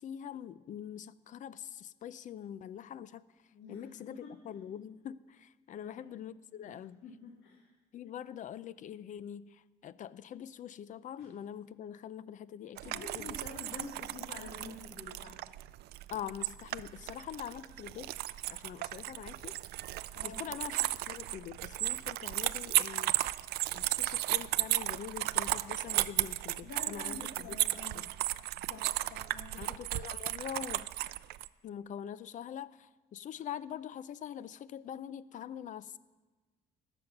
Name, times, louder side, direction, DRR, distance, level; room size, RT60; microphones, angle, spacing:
voice 1, 0.0-3.2 3.7-7.0 7.9-13.3 16.1-18.1 18.5-19.6 20.2-23.1 23.7-27.6 27.9-28.1 29.6-30.9 31.6-36.0, left 9 dB, 50° left, 18 dB, 0.5 m, -44 dB
voice 2, 3.5-4.4 5.8-6.1 6.6-6.7 7.0-7.7 11.2-11.3 12.8-15.4 20.1-20.5 26.6-28.0 28.6-29.7, left 4 dB, 80° left, 0 dB, 1.9 m, -48 dB
sound 1, 12.8-31.5, right 16 dB, 70° right, 0.4 m, -35 dB
20.0 x 7.1 x 5.9 m, 1.3 s
cardioid pair, 110°, 17 cm